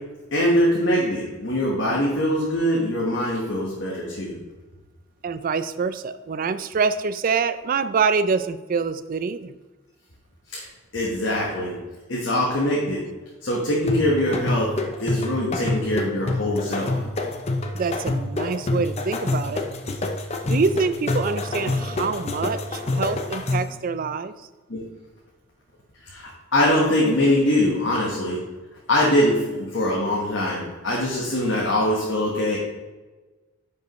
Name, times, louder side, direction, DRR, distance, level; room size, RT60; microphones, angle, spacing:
voice 1, 0.3-4.4 10.5-10.6 10.9-11.8 12.1-13.0 13.4-14.7 15.0-17.0 24.7-24.8 26.0-28.4 28.9-32.6, left 1 dB, 60° left, -4 dB, 1.3 m, -23 dB
voice 2, 5.2-9.5 17.7-19.6 20.4-24.3, right 5 dB, 45° right, 13 dB, 0.3 m, -25 dB
sound 1, 13.9-23.8, left 2 dB, 30° left, 0.6 m, -27 dB
10.0 x 5.2 x 3.1 m, 1.2 s
head